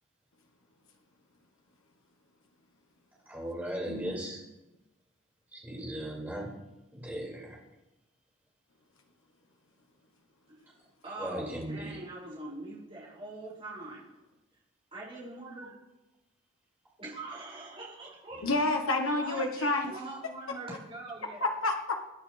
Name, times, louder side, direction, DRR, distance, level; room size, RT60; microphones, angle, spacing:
voice 1, 3.3-4.4 5.5-6.5 6.9-7.6 11.2-12.0, right 1 dB, 10° right, -5 dB, 5.6 m, -37 dB
voice 2, 11.0-14.0 14.9-15.7 17.0-18.5 19.2-21.5, right 2 dB, 25° right, -6 dB, 6.3 m, -43 dB
voice 3, 18.4-19.9 21.4-22.1, left 2 dB, 80° left, 2 dB, 1.5 m, -29 dB
27.5 x 10.0 x 3.5 m, 0.98 s
head